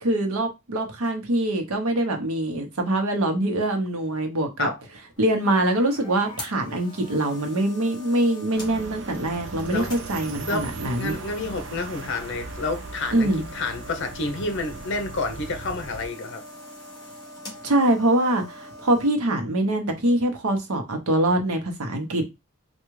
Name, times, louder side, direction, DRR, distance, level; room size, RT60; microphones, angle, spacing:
voice 1, 0.0-4.7 5.2-11.2 13.1-13.5 17.6-22.3, right 1 dB, 90° right, 0.8 m, -24 dB
sound 1, 5.2-19.1, left 1 dB, 20° left, 1.0 m, -42 dB
sound 2, 8.5-16.1, right 4 dB, 60° right, 0.4 m, -39 dB
voice 2, 10.5-16.4, left 3 dB, 55° left, 0.6 m, -29 dB
3.5 x 2.3 x 3.1 m
head